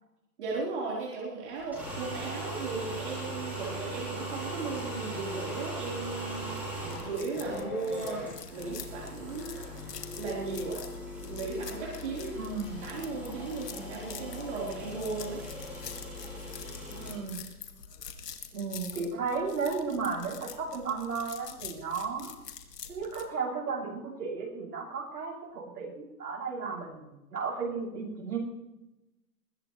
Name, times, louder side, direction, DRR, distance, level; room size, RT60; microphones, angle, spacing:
voice 1, 0.4-6.6 7.0-8.2 8.5-9.6 10.1-10.8 11.2-12.4 12.8-15.4, right 4 dB, 45° right, -5 dB, 4.2 m, -36 dB
sound 1, 1.6-17.1, right 1 dB, 5° right, 4.7 m, -39 dB
sound 2, 6.2-23.2, left 7 dB, 75° left, 2.3 m, -46 dB
sound 3, 11.8-14.0 15.3-15.7 16.9-17.2, left 4 dB, 45° left, 6.6 m, -55 dB
voice 2, 12.3-12.8 16.9-17.4 18.5-22.3 22.9-28.4, right 5 dB, 75° right, -2 dB, 7.3 m, -34 dB
22.0 x 16.5 x 3.3 m, 0.96 s
hypercardioid pair, 175°, 48 cm